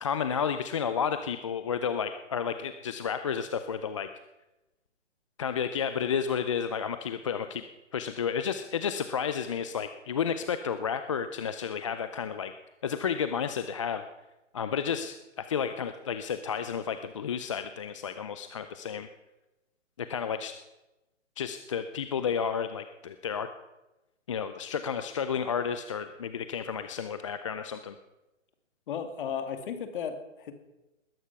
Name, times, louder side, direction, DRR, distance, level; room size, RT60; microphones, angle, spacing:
voice 1, 0.0-4.1 5.4-7.6 7.9-12.5 12.8-14.0 14.5-19.1 20.0-20.5 21.4-23.5 24.3-28.0, left 7 dB, 25° left, 10 dB, 0.5 m, -31 dB
voice 2, 28.9-30.5, left 7 dB, 45° left, 8 dB, 2.3 m, -35 dB
20.0 x 11.0 x 5.9 m, 1.0 s
hypercardioid pair, 145°, 37 cm